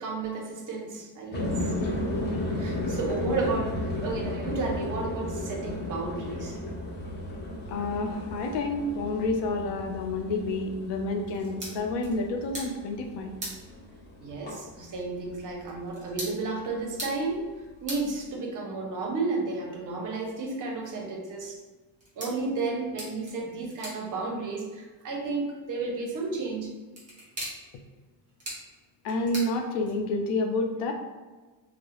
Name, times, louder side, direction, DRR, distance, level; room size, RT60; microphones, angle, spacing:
voice 1, 0.0-1.6 2.6-6.6 14.2-17.5 17.8-21.6 22.2-26.7, right 3 dB, 45° right, 0 dB, 0.6 m, -32 dB
sound 1, 1.3-15.9 16.1-16.8, left 1 dB, 25° left, 0.5 m, -34 dB
voice 2, 7.7-13.3 29.0-30.9, left 2 dB, 75° left, 4 dB, 0.5 m, -29 dB
sound 2, 11.2-30.3, equal, 15° right, 0.8 m, -45 dB
2.3 x 2.0 x 2.9 m, 1.3 s
cardioid pair, 140°, 43 cm